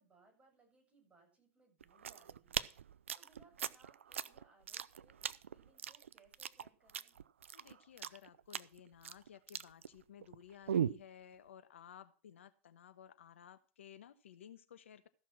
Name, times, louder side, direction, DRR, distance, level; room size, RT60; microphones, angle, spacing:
voice 1, 0.0-2.8 3.1-7.2, right 3 dB, 20° right, 1 dB, 7.3 m, -68 dB
sound 1, 1.8-10.4 10.7-11.1, right 8 dB, 85° right, 0.5 m, -40 dB
voice 2, 7.5-15.1, left 9 dB, 80° left, 11 dB, 1.2 m, -56 dB
14.5 x 6.3 x 6.0 m, 0.36 s
hypercardioid pair, 90°, 7 cm